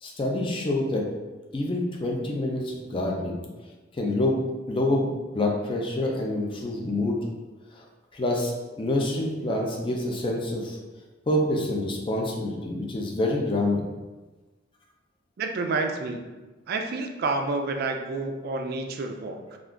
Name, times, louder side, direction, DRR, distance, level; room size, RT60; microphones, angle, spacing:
voice 1, 0.0-1.0 1.5-3.4 4.0-4.4 4.7-7.2 7.7-7.8 8.1-10.8 11.3-13.8, left 1 dB, 25° left, -1 dB, 0.4 m, -27 dB
voice 2, 15.4-16.2 16.7-19.6, right 3 dB, 50° right, 4 dB, 0.3 m, -29 dB
2.4 x 2.3 x 3.6 m, 1.2 s
head